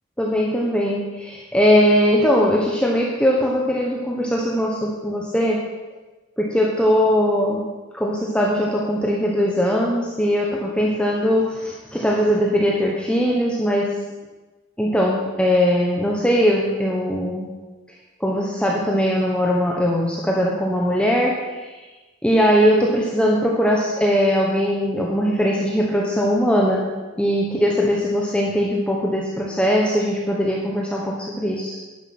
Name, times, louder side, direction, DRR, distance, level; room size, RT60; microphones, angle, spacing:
voice 1, 0.2-5.6 6.4-7.7 7.9-13.9 14.8-17.5 18.2-21.8 22.2-26.8 27.2-31.8, equal, 5° left, -2 dB, 1.2 m, -20 dB
11.5 x 9.9 x 6.0 m, 1.2 s
head